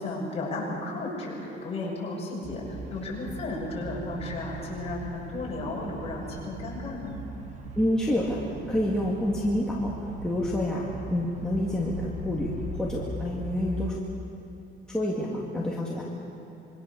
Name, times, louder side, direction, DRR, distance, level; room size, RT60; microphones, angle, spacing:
voice 1, 0.0-7.2, left 2 dB, 30° left, -3 dB, 6.7 m, -34 dB
sound 1, 2.4-14.0, right 2 dB, 35° right, 1.6 m, -40 dB
voice 2, 7.8-8.4 8.7-14.0 14.9-16.2, left 1 dB, 5° left, -5 dB, 2.1 m, -28 dB
26.0 x 24.0 x 6.9 m, 2.8 s
cardioid pair, 175°, 20 cm